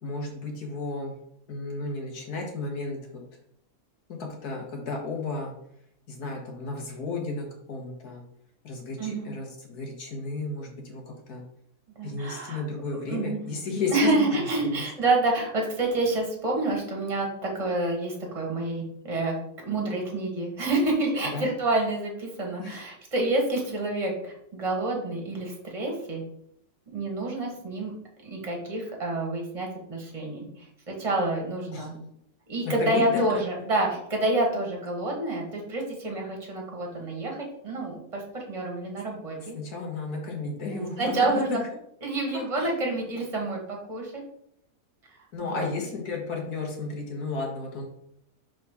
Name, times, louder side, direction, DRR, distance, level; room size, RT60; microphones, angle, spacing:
voice 1, 0.0-1.1 1.5-3.0 4.2-5.5 6.1-8.2 8.6-11.0 11.3-11.4 12.0-14.8 21.3-21.5 22.6-22.8 31.7-31.9 32.6-33.2 39.4-41.6 42.5-42.7 45.3-47.9, left 3 dB, 90° left, 1 dB, 1.9 m, -33 dB
voice 2, 9.0-9.3 11.9-12.6 13.1-13.4 13.9-19.4 19.6-26.2 26.9-27.9 28.2-32.0 32.5-39.5 40.7-41.6 42.0-43.6 43.9-44.1 45.4-45.7, right 2 dB, 20° right, -1 dB, 1.5 m, -28 dB
5.2 x 3.9 x 5.4 m, 0.72 s
omnidirectional pair, 1.6 m